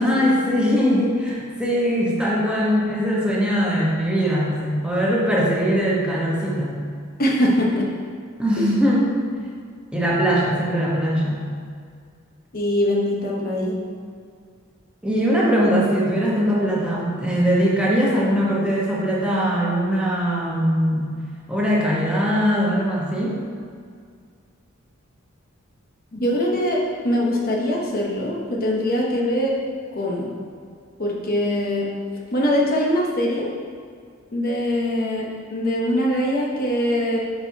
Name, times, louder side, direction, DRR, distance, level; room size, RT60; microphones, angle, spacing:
voice 1, 0.0-6.8 8.4-9.1 9.9-11.5 15.0-21.1 21.5-23.4, equal, 5° right, -5 dB, 1.1 m, -21 dB
voice 2, 7.2-7.9 12.5-13.8 26.1-29.6 29.9-30.3 31.0-31.9 32.3-33.5 34.3-37.2, left 1 dB, 45° left, -2 dB, 1.0 m, -22 dB
11.5 x 4.5 x 2.8 m, 2.2 s
head